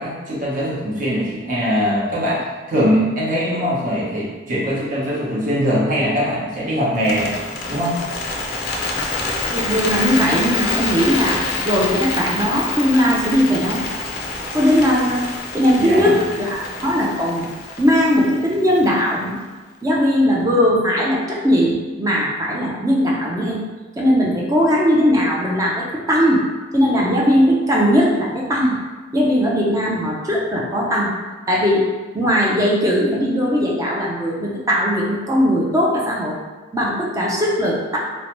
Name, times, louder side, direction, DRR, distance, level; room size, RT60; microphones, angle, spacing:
voice 1, 0.0-7.3 7.7-8.0 15.8-16.2, equal, 45° right, -6 dB, 0.8 m, -21 dB
Bird, 7.0-19.2, left 3 dB, 50° left, 0.4 m, -27 dB
voice 2, 9.5-13.8 14.5-15.3 15.5-17.5 17.8-19.4 19.8-23.6 24.0-26.4 26.7-28.8 29.1-31.2 31.5-31.8 32.1-36.4 36.7-38.0, equal, 15° right, -3 dB, 0.4 m, -18 dB
2.7 x 2.1 x 2.9 m, 1.3 s
head